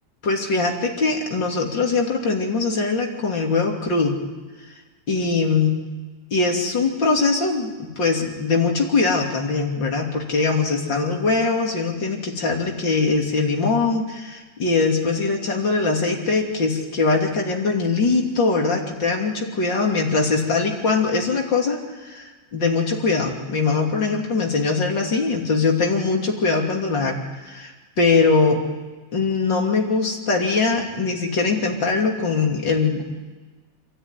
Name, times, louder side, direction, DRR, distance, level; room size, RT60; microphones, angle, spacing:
voice 1, 0.2-4.2 5.1-5.8 6.3-27.2 27.4-27.7 28.0-28.6 29.1-33.0, left 4 dB, 75° left, 1 dB, 3.6 m, -22 dB
27.0 x 13.5 x 9.8 m, 1.3 s
omnidirectional pair, 2.0 m